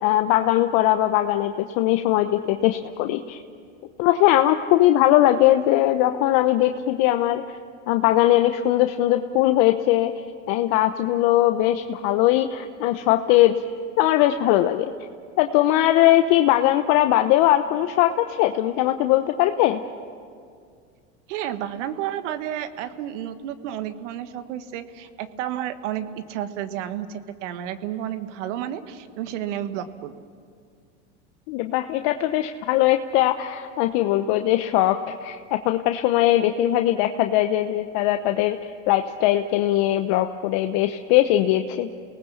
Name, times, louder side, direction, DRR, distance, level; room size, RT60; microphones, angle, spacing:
voice 1, 0.0-3.4 4.0-7.4 7.9-10.1 10.5-13.6 14.0-14.9 15.4-19.8 31.5-35.0 35.2-35.4 35.6-38.6 38.9-41.9, left 14 dB, 60° left, 7 dB, 1.0 m, -20 dB
voice 2, 21.3-30.2, right 11 dB, 75° right, 11 dB, 1.5 m, -31 dB
28.5 x 19.0 x 7.2 m, 2.2 s
hypercardioid pair, 100°, 37 cm